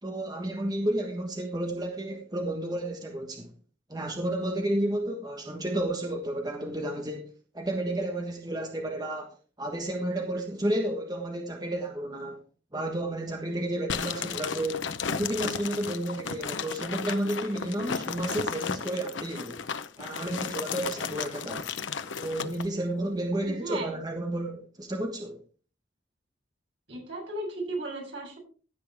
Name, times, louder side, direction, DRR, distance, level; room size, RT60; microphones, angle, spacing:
voice 1, 0.0-3.5 3.9-7.3 7.5-12.4 12.7-19.6 20.0-21.7 22.2-25.4, right 1 dB, 20° right, 1.3 m, -31 dB
sound 1, 13.9-22.7, left 6 dB, 90° left, 0.8 m, -34 dB
voice 2, 23.4-23.9 26.9-28.4, right 2 dB, 80° right, 7.2 m, -35 dB
15.0 x 8.6 x 3.5 m
head